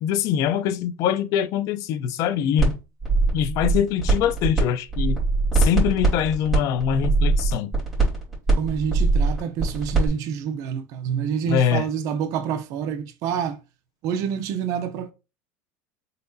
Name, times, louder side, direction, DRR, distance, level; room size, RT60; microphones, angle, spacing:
voice 1, 0.0-2.8 3.3-5.2 5.5-7.7 11.5-11.9, left 9 dB, 50° left, 0.5 m, -23 dB
sound 1, 2.6-2.7 3.0-4.6 4.9-10.1, right 4 dB, 5° right, 2.6 m, -21 dB
voice 2, 8.6-13.6 14.0-15.1, right 8 dB, 55° right, 0.6 m, -27 dB
4.1 x 3.8 x 2.7 m
supercardioid pair, 140°, 7 cm